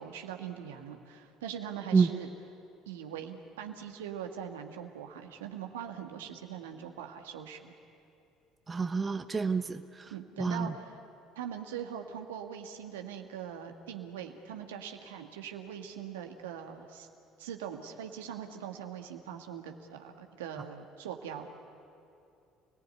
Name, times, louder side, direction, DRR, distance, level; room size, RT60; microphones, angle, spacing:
voice 1, 0.0-2.3 2.8-7.7 10.1-11.0 11.3-17.1 17.4-21.5, right 9 dB, 80° right, 4 dB, 1.8 m, -42 dB
voice 2, 8.7-10.1 10.4-10.7, right 5 dB, 30° right, 10 dB, 1.0 m, -28 dB
29.5 x 18.5 x 9.6 m, 2.6 s
hypercardioid pair, 60°, 0 cm